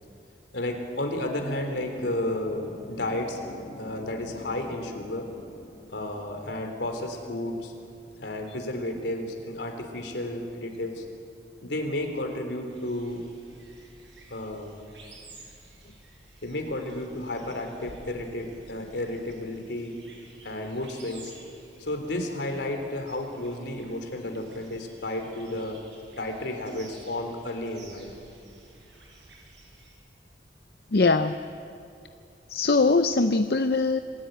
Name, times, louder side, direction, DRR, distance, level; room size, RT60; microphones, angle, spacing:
voice 1, 0.5-3.5 3.8-5.3 5.9-7.7 8.2-11.1 11.6-13.2 14.3-14.8 16.4-20.0 20.4-21.3 21.8-25.8 26.2-28.1, left 1 dB, 80° left, 4 dB, 3.6 m, -32 dB
sound 1, 1.5-6.5, left 1 dB, 45° left, 1.2 m, -46 dB
sound 2, 12.7-29.9, right 2 dB, 90° right, 7.2 m, -53 dB
voice 2, 30.9-31.4 32.5-34.0, left 3 dB, 60° left, 8 dB, 0.6 m, -22 dB
26.5 x 16.0 x 9.2 m, 2.6 s
head